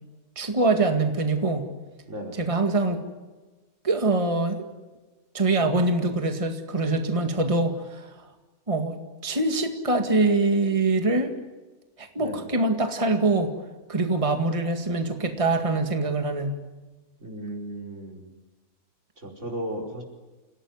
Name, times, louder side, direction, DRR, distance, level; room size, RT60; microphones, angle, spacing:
voice 1, 0.4-1.6 2.4-3.0 3.8-4.7 5.3-8.3 8.7-9.0 9.2-11.3 12.0-13.5 13.9-16.5, right 2 dB, 20° right, 5 dB, 2.0 m, -24 dB
voice 2, 2.1-2.4 12.2-12.5 17.2-18.3 19.2-20.0, right 1 dB, 50° right, 0 dB, 5.1 m, -35 dB
29.0 x 17.0 x 9.7 m, 1.2 s
omnidirectional pair, 1.6 m